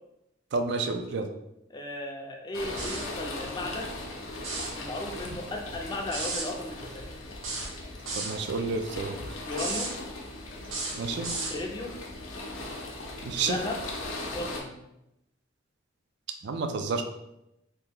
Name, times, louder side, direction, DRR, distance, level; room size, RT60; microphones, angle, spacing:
voice 1, 0.5-1.3 8.2-9.2 11.0-11.3 13.2-13.6 16.4-17.0, right 4 dB, 60° right, 5 dB, 0.3 m, -30 dB
voice 2, 1.7-3.9 4.7-7.1 9.5-10.0 11.5-12.0 13.4-13.8 14.3-14.8, left 2 dB, 20° left, 1 dB, 0.4 m, -35 dB
sound 1, 2.5-14.6, left 2 dB, 80° left, 0.6 m, -39 dB
sound 2, 2.8-3.1 4.3-4.8 6.1-6.5 7.4-8.4 9.5-9.9 10.6-11.6, right 3 dB, 85° right, 0.7 m, -34 dB
2.8 x 2.3 x 3.5 m, 0.86 s
head